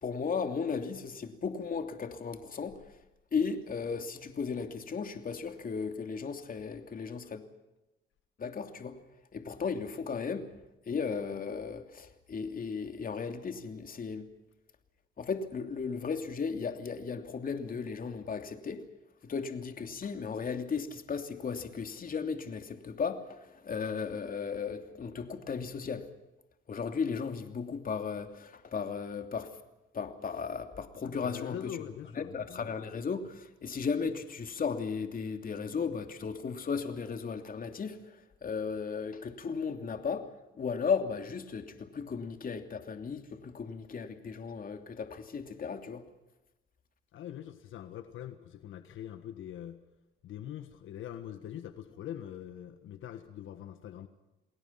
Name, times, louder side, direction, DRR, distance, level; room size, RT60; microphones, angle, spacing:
voice 1, 0.0-2.8 3.3-7.4 8.4-9.0 9.3-10.5 10.9-14.3 15.2-18.8 19.2-26.0 26.7-29.5 29.9-31.8 32.1-40.3 40.5-46.0, left 5 dB, 45° left, 7 dB, 2.9 m, -35 dB
voice 2, 31.0-32.7 47.1-49.8 50.2-54.1, left 10 dB, 80° left, 9 dB, 1.6 m, -43 dB
29.5 x 20.5 x 5.9 m, 1.0 s
cardioid pair, 90°, 20 cm